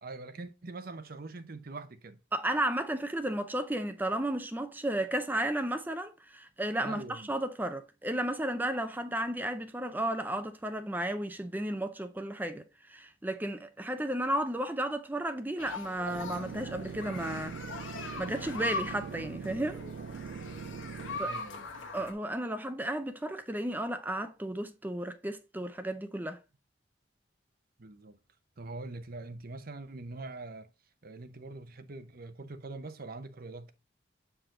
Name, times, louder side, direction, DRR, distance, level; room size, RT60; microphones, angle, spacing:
voice 1, 0.0-2.2 6.8-7.3 20.5-20.6 21.2-21.9 27.8-28.2 28.6-30.7 31.0-33.7, right 2 dB, 50° right, 0.8 m, -43 dB
voice 2, 2.3-12.6 12.9-17.6 18.2-19.8 21.2-21.3 21.9-26.4, right 1 dB, 10° right, 0.5 m, -33 dB
sound 1, 15.6-22.1, left 3 dB, 90° left, 1.2 m, -41 dB
sound 2, 16.1-21.2, right 6 dB, 75° right, 0.3 m, -42 dB
7.6 x 4.9 x 3.8 m
head